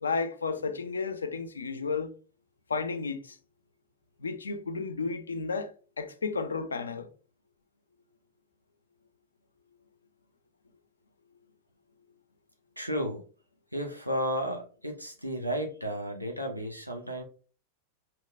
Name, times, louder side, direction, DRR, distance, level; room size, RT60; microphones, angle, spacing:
voice 1, 0.0-2.1 2.7-3.4 4.2-7.1, left 4 dB, 75° left, 0.3 m, -32 dB
voice 2, 12.8-13.2 13.7-17.2, equal, 90° right, 0.4 m, -33 dB
2.8 x 2.2 x 2.4 m
figure-of-eight pair, 90°, 0 cm